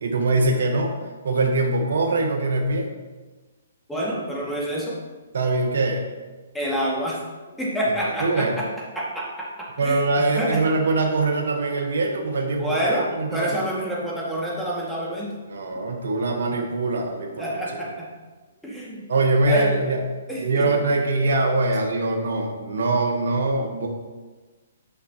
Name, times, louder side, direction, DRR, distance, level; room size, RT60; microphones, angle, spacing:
voice 1, 0.0-1.0 1.2-2.9 5.3-6.0 8.0-8.5 9.8-12.8 13.1-13.5 15.5-17.5 19.1-20.0 20.4-23.9, right 2 dB, 70° right, 1 dB, 1.0 m, -23 dB
voice 2, 3.9-5.0 6.5-7.2 7.6-8.7 9.0-10.6 12.6-15.3 17.4-18.1 18.6-19.0 19.5-19.9 20.3-20.7, right 1 dB, ahead, -6 dB, 1.8 m, -27 dB
9.1 x 5.7 x 2.8 m, 1.3 s
hypercardioid pair, 140°, 0 cm